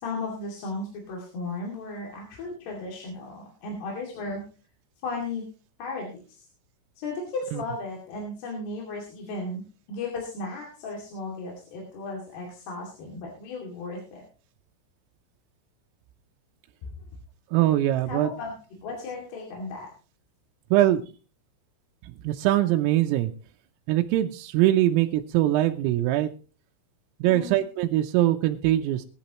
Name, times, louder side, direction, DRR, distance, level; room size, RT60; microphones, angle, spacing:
voice 1, 0.0-4.4 5.0-5.4 5.8-6.5 7.0-9.6 9.9-14.2 16.8-16.9 18.1-19.9 27.3-27.6, left 3 dB, 55° left, -1 dB, 4.3 m, -35 dB
voice 2, 17.5-18.3 20.7-21.0 22.2-23.3 23.9-26.3 27.2-29.1, right 14 dB, 90° right, 4 dB, 3.5 m, -22 dB
21.0 x 11.0 x 3.0 m, 0.36 s
omnidirectional pair, 5.9 m